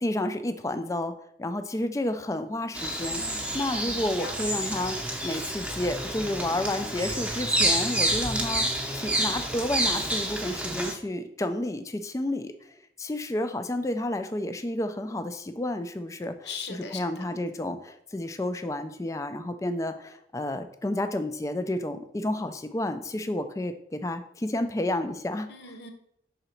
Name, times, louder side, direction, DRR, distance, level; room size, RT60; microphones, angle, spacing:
voice 1, 0.0-1.1 1.4-3.2 3.5-5.0 5.2-8.7 8.9-25.8, left 1 dB, 15° left, 9 dB, 0.3 m, -31 dB
Bird vocalization bird call bird song, 2.7-10.9, right 1 dB, 5° right, 0.7 m, -29 dB
voice 2, 3.1-4.7 16.4-17.2 25.5-25.9, left 4 dB, 75° left, 6 dB, 0.9 m, -41 dB
5.7 x 3.9 x 4.4 m, 0.73 s
head